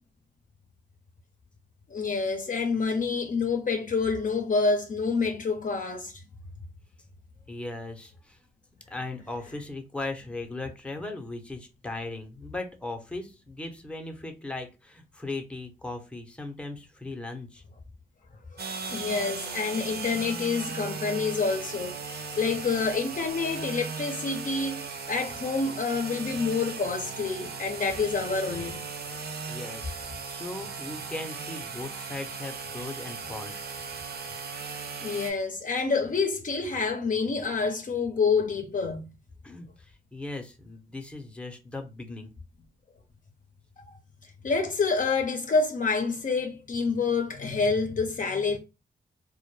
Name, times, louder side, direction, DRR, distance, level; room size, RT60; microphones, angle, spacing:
voice 1, 1.9-6.1 18.9-28.8 35.0-39.1 43.9-44.0 44.4-48.6, left 4 dB, 45° left, 0.5 m, -27 dB
voice 2, 7.5-8.4 8.9-17.6 29.5-33.6 39.4-42.3, left 2 dB, 5° left, 0.7 m, -38 dB
sound 1, 18.6-35.3, right 5 dB, 60° right, 0.5 m, -37 dB
2.2 x 2.1 x 3.0 m
cardioid pair, 50°, 18 cm